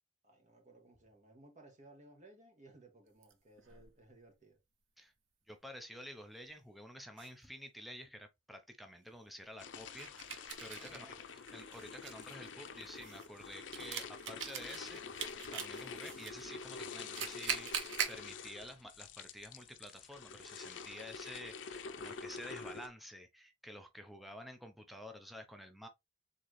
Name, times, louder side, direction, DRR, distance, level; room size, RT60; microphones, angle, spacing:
voice 1, 0.2-4.6 10.8-11.1, right 2 dB, 40° right, 1.8 m, -60 dB
sound 1, 3.2-3.9 6.4-6.5 7.2-7.3 10.0-11.1 11.5-16.3 16.9-18.2, right 7 dB, 85° right, 0.9 m, -42 dB
voice 2, 5.5-15.0 15.5-25.9, equal, ahead, 0.6 m, -50 dB
sound 2, 9.6-22.9, left 5 dB, 80° left, 0.6 m, -47 dB
4.1 x 3.7 x 3.1 m
head